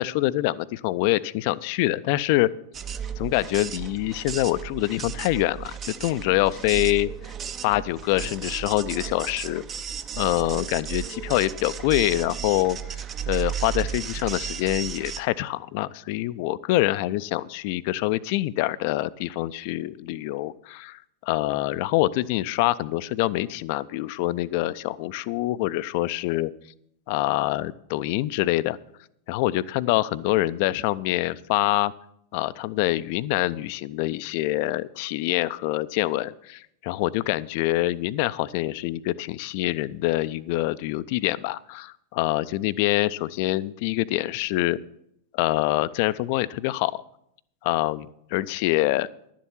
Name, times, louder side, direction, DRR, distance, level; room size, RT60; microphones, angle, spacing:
voice 1, 0.0-2.5 3.2-7.1 7.6-9.6 10.2-26.5 27.1-28.8 29.3-31.9 32.3-44.8 45.3-47.0 47.6-48.1 48.3-49.1, left 17 dB, 45° left, 17 dB, 0.4 m, -25 dB
sound 1, 2.7-15.2, right 8 dB, 25° right, 0.6 m, -34 dB
11.5 x 7.5 x 7.1 m, 0.75 s
figure-of-eight pair, 90°, 0 cm